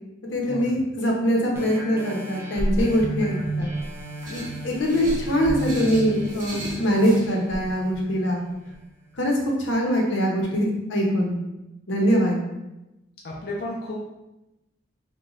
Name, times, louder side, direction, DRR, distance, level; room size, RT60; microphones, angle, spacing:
voice 1, 0.3-3.7 4.3-8.4 9.1-9.3 9.6-11.4 11.9-12.4, equal, 85° left, 0 dB, 0.7 m, -23 dB
sound 1, 1.6-8.7 9.3-9.4, right 1 dB, 15° right, 0.4 m, -32 dB
sound 2, 4.2-7.3, right 1 dB, 45° right, 0.7 m, -37 dB
voice 2, 13.2-14.0, left 1 dB, 50° left, -3 dB, 0.4 m, -32 dB
3.0 x 2.2 x 3.7 m, 0.96 s
head